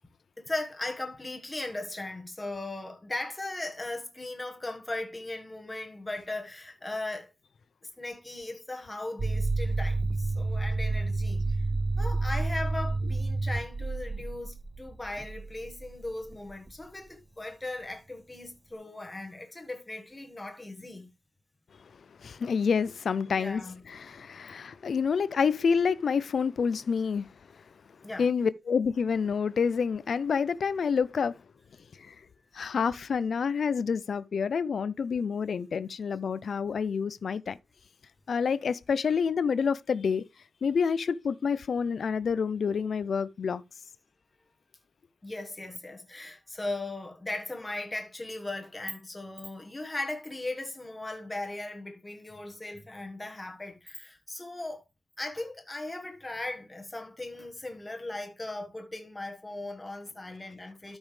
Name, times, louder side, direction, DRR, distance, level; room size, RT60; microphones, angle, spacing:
voice 1, 0.4-7.3 7.8-11.5 12.0-21.1 23.2-23.8 28.0-28.3 45.2-54.8 55.2-61.0, left 2 dB, 15° left, 1.4 m, -38 dB
sound 1, 9.2-16.8, right 3 dB, 25° right, 0.5 m, -30 dB
voice 2, 22.2-27.6 28.2-31.4 32.0-32.2 32.5-37.6 38.3-40.2 40.6-43.6, left 6 dB, 60° left, 0.4 m, -28 dB
12.5 x 5.3 x 3.2 m
wide cardioid pair, 145°, 0 cm